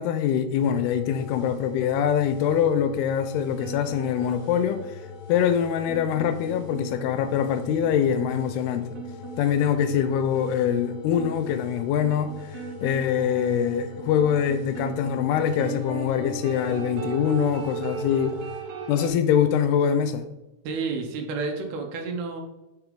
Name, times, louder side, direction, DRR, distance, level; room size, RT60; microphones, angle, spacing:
voice 1, 0.0-5.0 5.3-8.9 9.4-18.4 18.9-20.3, left 8 dB, 85° left, 2.6 m, -24 dB
sound 1, 0.6-18.6, left 5 dB, 50° left, 2.6 m, -42 dB
sound 2, 3.6-19.1, right 5 dB, 60° right, 1.6 m, -38 dB
voice 2, 20.6-22.4, right 4 dB, 75° right, 2.9 m, -30 dB
9.5 x 4.8 x 3.5 m
omnidirectional pair, 4.6 m